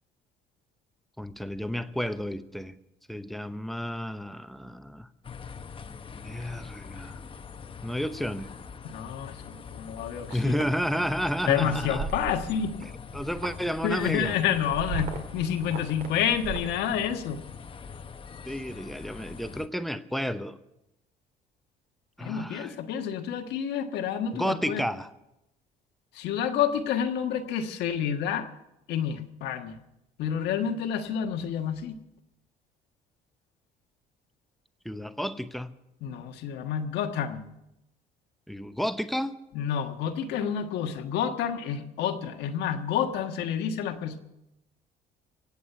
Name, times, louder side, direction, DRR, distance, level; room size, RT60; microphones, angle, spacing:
voice 1, 1.2-2.8 3.1-5.1 6.2-7.1 7.8-8.5 10.3-12.1 12.8-14.4 18.4-20.6 22.2-22.7 24.3-25.1 34.8-35.7 38.5-39.4, equal, ahead, 10 dB, 0.8 m, -31 dB
sound 1, 5.2-19.7, left 6 dB, 30° left, 0.9 m, -43 dB
voice 2, 8.8-10.6 11.5-12.8 13.8-17.4 22.2-24.8 26.1-28.5 28.9-29.8 30.2-32.0 36.0-37.5 39.5-44.2, left 8 dB, 85° left, 6 dB, 1.4 m, -29 dB
sound 2, 10.0-10.7 11.2-11.4 11.7-12.8 13.1-16.8, right 5 dB, 65° right, 2.1 m, -37 dB
24.5 x 8.5 x 5.6 m, 0.89 s
cardioid pair, 110°, 17 cm